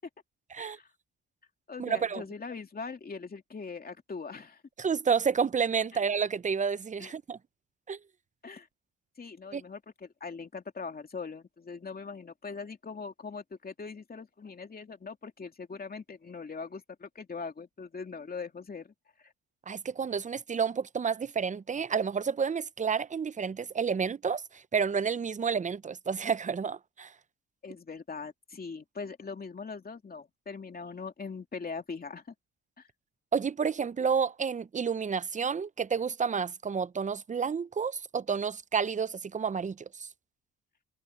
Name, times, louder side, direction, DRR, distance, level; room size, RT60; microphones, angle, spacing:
voice 1, 0.6-0.9 1.7-4.6 5.9-6.0 7.0-7.1 8.4-8.7 9.2-18.9 19.2-19.3 27.6-32.3 32.8-32.9, left 4 dB, 30° left, 2.8 m, -41 dB
voice 2, 1.8-2.2 4.8-7.4 7.9-8.0 9.5-9.6 19.7-27.1 33.3-40.1, right 6 dB, 25° right, 0.6 m, -30 dB
cardioid pair, 90°, 30 cm